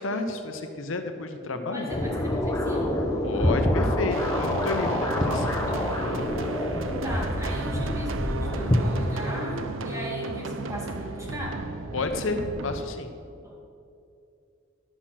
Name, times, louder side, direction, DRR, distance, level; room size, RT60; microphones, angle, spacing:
voice 1, 0.0-1.9 3.2-5.6 6.0-6.3 11.9-13.1, left 3 dB, 75° left, 6 dB, 0.8 m, -31 dB
voice 2, 1.7-3.1 6.9-11.6 13.4-13.6, equal, 15° right, -3 dB, 2.1 m, -37 dB
sound 1, 1.9-9.5, left 1 dB, 15° left, 1.0 m, -27 dB
sound 2, 4.1-12.8, right 3 dB, 80° right, 0.6 m, -34 dB
11.5 x 6.4 x 5.8 m, 2.5 s
head